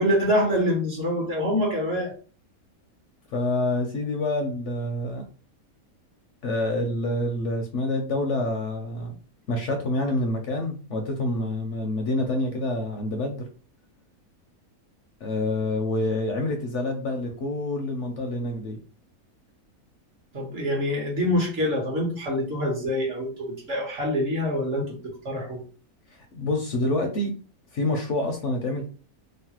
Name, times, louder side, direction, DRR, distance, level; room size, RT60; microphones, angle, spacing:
voice 1, 0.0-2.1 20.3-25.6, equal, 50° right, -1 dB, 1.1 m, -25 dB
voice 2, 3.3-5.2 6.4-9.1 9.5-13.5 15.2-18.8 26.1-27.4 27.7-28.8, left 2 dB, 65° left, 3 dB, 0.8 m, -27 dB
3.1 x 2.1 x 2.8 m, 0.38 s
omnidirectional pair, 1.6 m